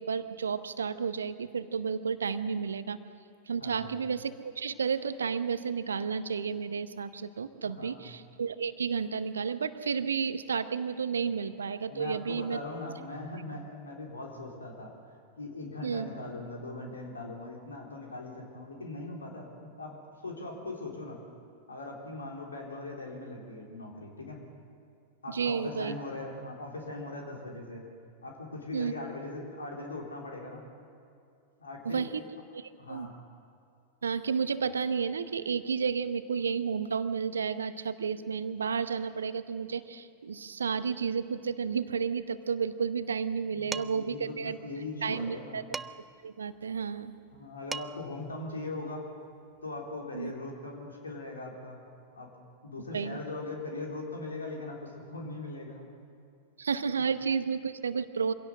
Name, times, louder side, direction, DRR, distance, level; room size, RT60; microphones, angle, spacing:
voice 1, 0.0-3.0 3.5-12.6 15.8-16.1 25.3-25.9 28.7-28.9 31.8-32.2 32.5-33.1 34.0-44.6 45.0-45.6 46.2-47.1 50.1-50.3 52.9-53.2 56.6-58.3, right 6 dB, 70° right, 13 dB, 0.9 m, -32 dB
voice 2, 3.6-4.0 7.6-8.1 11.9-14.9 15.4-21.2 21.7-24.4 25.2-27.8 28.2-30.7 31.6-32.1 32.8-33.1 43.5-45.6 47.3-49.0 49.6-51.8 52.2-52.3 52.6-55.9, left 2 dB, 75° left, 0 dB, 3.7 m, -40 dB
Dishes pots and pans, 43.7-44.1 45.7-46.2 47.4-47.5 47.7-48.2, right 5 dB, 15° right, 0.4 m, -38 dB
24.5 x 16.5 x 7.8 m, 2.4 s
figure-of-eight pair, 90°, 0 cm